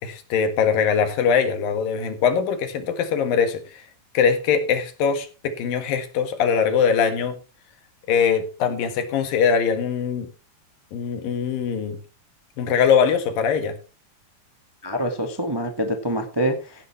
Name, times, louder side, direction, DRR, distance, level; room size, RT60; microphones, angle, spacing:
voice 1, 0.0-3.8 4.1-7.3 8.1-10.3 10.9-12.0 12.6-13.8, left 6 dB, 85° left, 3.4 m, -22 dB
voice 2, 14.8-16.9, equal, 20° right, 0.6 m, -26 dB
16.0 x 9.7 x 3.2 m
omnidirectional pair, 3.9 m